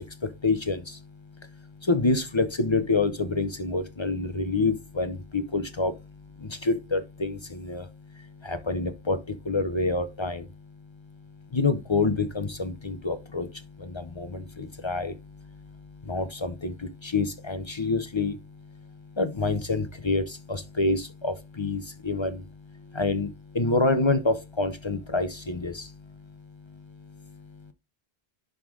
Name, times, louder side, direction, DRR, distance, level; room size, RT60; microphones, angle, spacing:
voice 1, 0.4-0.8 1.9-5.9 6.6-7.8 8.4-9.2 9.5-10.4 11.5-13.5 14.2-15.1 16.1-16.7 17.0-18.3 19.2-20.2 20.5-22.4 23.0-23.3 23.5-25.8, left 3 dB, 35° left, 0.6 m, -27 dB
11.0 x 3.8 x 3.6 m
omnidirectional pair, 1.1 m